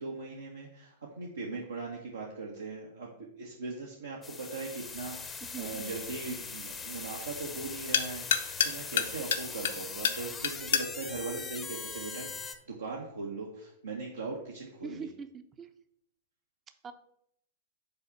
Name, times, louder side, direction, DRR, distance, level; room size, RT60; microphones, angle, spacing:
voice 1, 0.0-15.1, right 3 dB, 80° right, -2 dB, 1.0 m, -40 dB
sound 1, 4.2-12.6, left 5 dB, 15° left, 0.7 m, -41 dB
sound 2, 4.9-12.5, left 7 dB, 65° left, 0.7 m, -34 dB
voice 2, 5.4-6.1 14.8-15.7 16.8-16.9, right 5 dB, 25° right, 9 dB, 0.6 m, -43 dB
5.5 x 4.2 x 5.9 m, 0.73 s
figure-of-eight pair, 105°, 0 cm